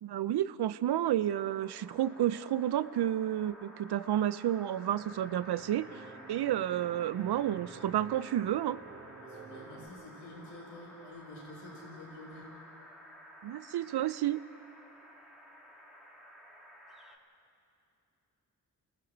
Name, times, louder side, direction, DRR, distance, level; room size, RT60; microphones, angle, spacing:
voice 1, 0.0-5.9 6.3-8.8 13.4-14.4, right 12 dB, 65° right, 17 dB, 0.7 m, -31 dB
sound 1, 0.9-17.2, equal, ahead, 3.7 m, -54 dB
sound 2, 4.9-9.9, right 3 dB, 40° right, 4.3 m, -50 dB
voice 2, 9.2-12.5, left 1 dB, 85° left, -4 dB, 6.8 m, -49 dB
29.5 x 20.5 x 4.7 m, 2.9 s
supercardioid pair, 50°, 42 cm